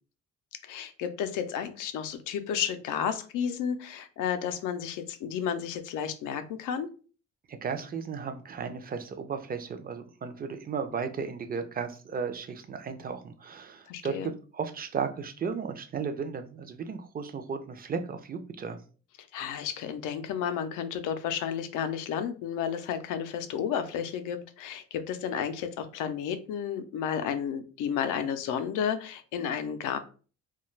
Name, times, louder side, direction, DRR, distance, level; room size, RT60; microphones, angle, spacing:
voice 1, 0.6-6.9 13.9-14.3 19.3-30.0, left 8 dB, 90° left, 9 dB, 0.5 m, -32 dB
voice 2, 7.5-18.8, right 6 dB, 30° right, 8 dB, 0.4 m, -35 dB
2.3 x 2.3 x 3.1 m, 0.37 s
cardioid pair, 90°, 30 cm